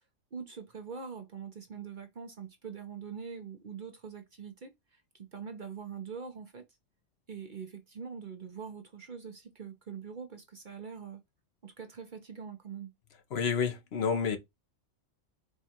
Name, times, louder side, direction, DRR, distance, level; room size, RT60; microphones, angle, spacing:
voice 1, 0.3-6.6 7.3-11.2 11.6-12.9, right 6 dB, 50° right, 0.7 m, -43 dB
voice 2, 13.3-14.4, left 6 dB, 60° left, 1.0 m, -29 dB
4.5 x 2.3 x 4.1 m
omnidirectional pair, 1.3 m